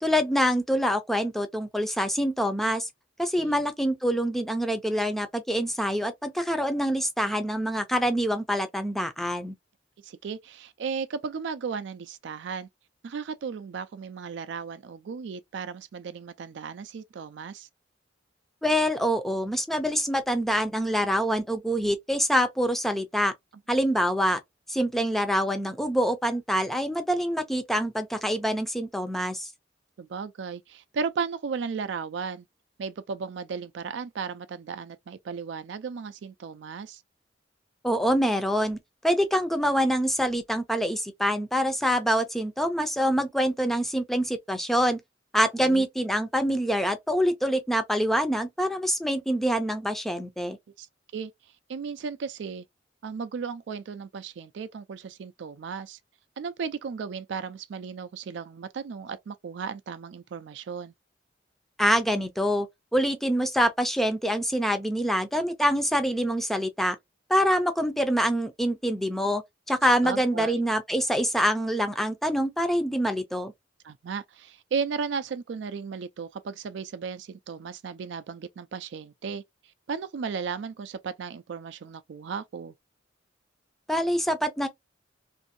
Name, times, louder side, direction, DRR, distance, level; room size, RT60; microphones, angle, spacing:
voice 1, 0.0-2.9 3.2-9.5 18.6-23.3 23.7-24.4 24.7-29.5 37.8-38.8 39.0-45.0 45.3-50.6 61.8-62.7 62.9-67.0 67.3-69.4 69.7-73.5 83.9-84.7, equal, ahead, 0.5 m, -25 dB
voice 2, 10.0-12.7 13.0-17.7 30.0-32.5 32.8-37.0 45.6-45.8 50.8-50.9 51.1-51.3 51.7-52.6 53.0-56.0 56.4-60.9 70.0-70.6 73.8-79.4 79.9-82.7, right 5 dB, 70° right, 0.4 m, -35 dB
2.6 x 2.6 x 2.6 m
head